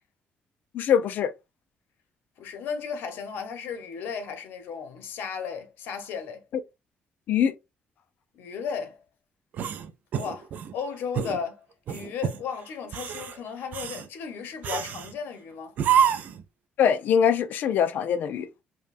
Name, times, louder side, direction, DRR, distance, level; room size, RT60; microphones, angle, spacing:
voice 1, 0.7-1.3 7.3-7.5 16.8-18.5, left 8 dB, 55° left, 0.4 m, -23 dB
voice 2, 2.4-6.4 8.3-9.0 10.2-15.8, left 6 dB, 70° left, 0.9 m, -35 dB
sound 1, 9.5-10.7 11.1-11.4 11.9-12.4 12.8-13.3 13.7-14.1 14.6-15.1 15.8-16.4, right 8 dB, 50° right, 0.4 m, -27 dB
5.0 x 2.2 x 2.4 m
cardioid pair, 175°, 4 cm